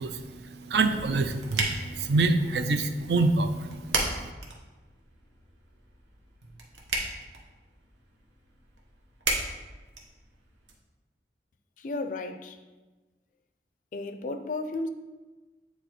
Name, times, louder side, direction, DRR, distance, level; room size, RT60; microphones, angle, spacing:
voice 1, 0.0-4.3, right 3 dB, 65° right, 9 dB, 0.4 m, -27 dB
sound 1, 0.8-10.7, right 2 dB, 85° right, 1.0 m, -36 dB
voice 2, 11.8-12.6 13.9-14.9, left 2 dB, 45° left, 8 dB, 0.4 m, -33 dB
9.0 x 4.0 x 3.0 m, 1.2 s
head